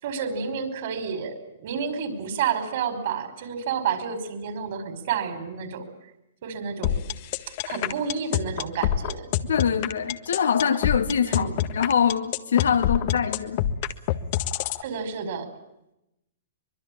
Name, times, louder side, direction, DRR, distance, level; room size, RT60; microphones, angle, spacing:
voice 1, 0.0-5.9 6.4-7.0 7.5-9.3 11.3-11.5 14.8-15.5, right 7 dB, 55° right, 5.4 m, -30 dB
sound 1, 6.8-14.8, left 12 dB, 45° left, 1.6 m, -25 dB
voice 2, 9.5-13.6, left 7 dB, 85° left, 2.9 m, -24 dB
24.5 x 22.0 x 8.8 m
hypercardioid pair, 145°, 0 cm